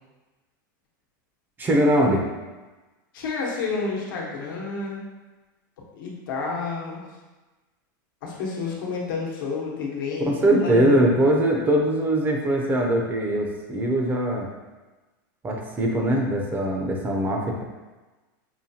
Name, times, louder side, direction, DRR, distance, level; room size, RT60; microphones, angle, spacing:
voice 1, 1.6-2.2 10.3-14.5 15.4-17.6, right 1 dB, 15° right, 0 dB, 0.5 m, -21 dB
voice 2, 3.1-5.0 5.9-7.0 8.2-10.9, left 4 dB, 85° left, -3 dB, 1.0 m, -30 dB
5.5 x 2.2 x 2.7 m, 1.2 s
supercardioid pair, 140°, 11 cm